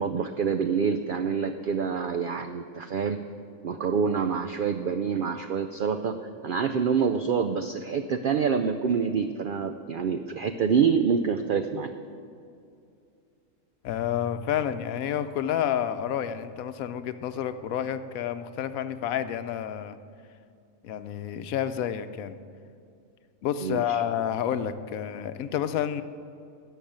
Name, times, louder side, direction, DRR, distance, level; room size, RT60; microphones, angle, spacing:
voice 1, 0.0-3.2 3.6-11.9 23.6-24.0, right 6 dB, 70° right, 8 dB, 0.5 m, -26 dB
voice 2, 13.8-20.0 20.8-22.4 23.4-26.0, left 9 dB, 80° left, 11 dB, 1.1 m, -29 dB
11.5 x 7.3 x 8.7 m, 2.4 s
omnidirectional pair, 1.5 m